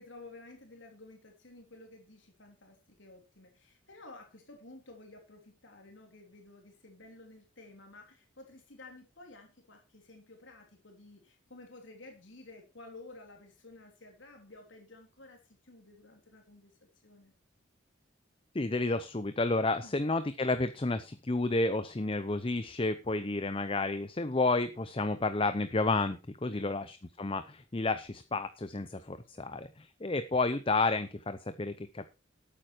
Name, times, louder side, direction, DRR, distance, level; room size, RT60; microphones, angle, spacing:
voice 1, 0.0-17.3 19.8-20.0 26.5-26.9 29.1-29.5, left 2 dB, 75° left, 2 dB, 3.3 m, -53 dB
voice 2, 18.5-32.1, left 3 dB, 30° left, 11 dB, 0.7 m, -31 dB
12.5 x 8.9 x 4.5 m, 0.29 s
head